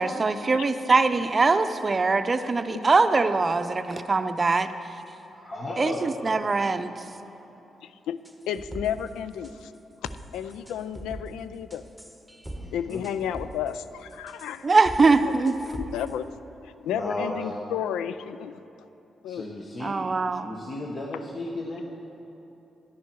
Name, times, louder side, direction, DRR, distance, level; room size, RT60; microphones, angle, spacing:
voice 1, 0.0-4.7 5.8-6.9 14.6-15.6 19.8-20.5, right 3 dB, 40° right, 11 dB, 0.6 m, -22 dB
voice 2, 5.3-6.1 12.6-13.0 16.9-17.4 19.3-20.0 20.4-21.8, left 2 dB, 45° left, -2 dB, 1.2 m, -34 dB
voice 3, 7.8-8.2 8.5-9.7 10.3-11.8 12.7-14.7 15.2-15.3 15.7-16.3 16.6-18.6 19.2-19.4, left 9 dB, 85° left, 13 dB, 0.3 m, -32 dB
sound 1, 8.2-9.1 9.4-9.8 10.0-11.3 11.7-12.6 12.9-13.7 14.1-16.1, right 1 dB, ahead, 1.3 m, -41 dB
10.5 x 10.0 x 4.6 m, 3.0 s
supercardioid pair, 45°, 0 cm